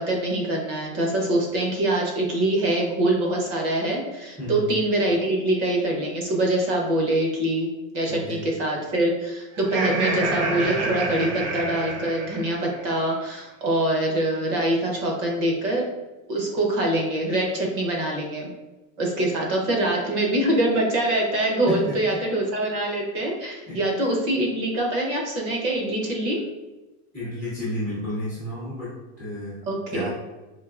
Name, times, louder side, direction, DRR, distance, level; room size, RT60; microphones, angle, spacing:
voice 1, 0.0-7.7 7.9-15.8 16.3-18.5 19.0-26.4 29.7-30.1, right 1 dB, 25° right, -1 dB, 0.7 m, -24 dB
voice 2, 8.1-8.4 21.7-21.8 23.7-23.8 27.1-29.6 29.9-30.1, left 1 dB, 5° right, -10 dB, 0.3 m, -31 dB
Laughter, 9.6-12.8, right 2 dB, 75° right, 1.1 m, -28 dB
4.6 x 2.7 x 2.4 m, 1.1 s
supercardioid pair, 165°, 41 cm